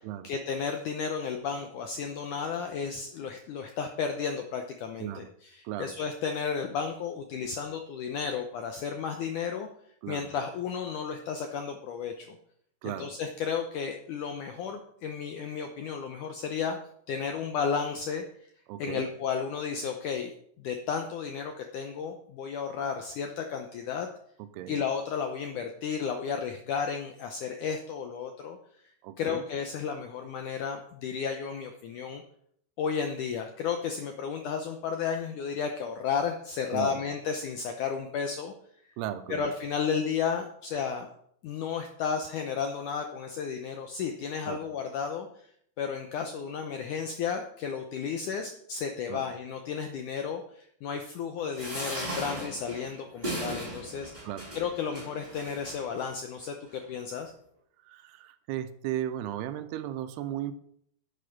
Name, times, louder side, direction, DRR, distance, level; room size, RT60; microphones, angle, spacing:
voice 1, 0.2-5.3 5.5-9.7 10.1-12.4 12.8-16.8 17.1-18.2 18.8-20.3 20.6-24.1 24.7-28.6 29.2-32.2 32.8-38.5 39.3-41.1 41.4-45.3 45.8-54.1 54.5-57.3, left 6 dB, 80° left, 5 dB, 1.8 m, -33 dB
voice 2, 18.7-19.1 24.4-24.8 29.0-29.4 36.7-37.0 39.0-39.4 44.5-44.6 49.1-49.2 54.3-54.5 57.8-60.5, right 12 dB, 85° right, 10 dB, 2.7 m, -35 dB
sound 1, 51.5-56.1 56.7-56.8 57.1-57.2, right 1 dB, 5° right, 5.3 m, -37 dB
10.0 x 8.6 x 5.8 m, 0.67 s
omnidirectional pair, 4.8 m